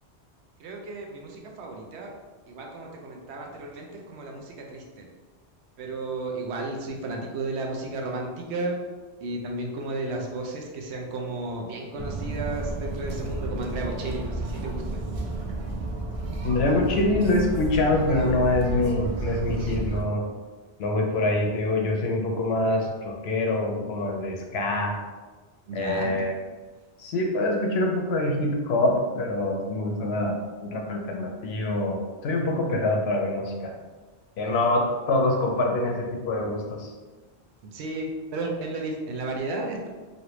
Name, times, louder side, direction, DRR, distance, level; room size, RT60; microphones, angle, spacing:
voice 1, 0.6-2.1 2.5-5.1 5.8-8.9 9.2-15.0 25.7-26.2 34.5-34.7 37.7-39.9, right 2 dB, 80° right, 1 dB, 0.9 m, -33 dB
sound 1, 12.0-20.0, right 2 dB, 60° right, 0.3 m, -32 dB
voice 2, 16.4-20.2 20.8-25.0 25.7-26.3 27.0-33.7 34.4-36.9, left 2 dB, 70° left, 2 dB, 0.8 m, -25 dB
3.1 x 2.5 x 2.9 m, 1.3 s
omnidirectional pair, 1.1 m